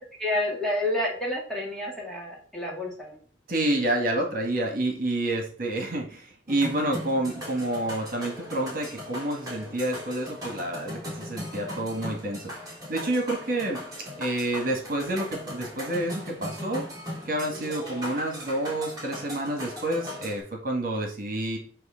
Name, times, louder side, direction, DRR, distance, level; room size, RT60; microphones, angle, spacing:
voice 1, 0.2-3.2, left 1 dB, 5° left, -3 dB, 1.9 m, -29 dB
voice 2, 3.5-13.8 14.2-16.9 17.2-21.6, right 1 dB, 50° right, 2 dB, 1.7 m, -29 dB
sound 1, 6.5-20.4, equal, 20° right, 3.3 m, -38 dB
7.8 x 3.3 x 6.4 m, 0.43 s
head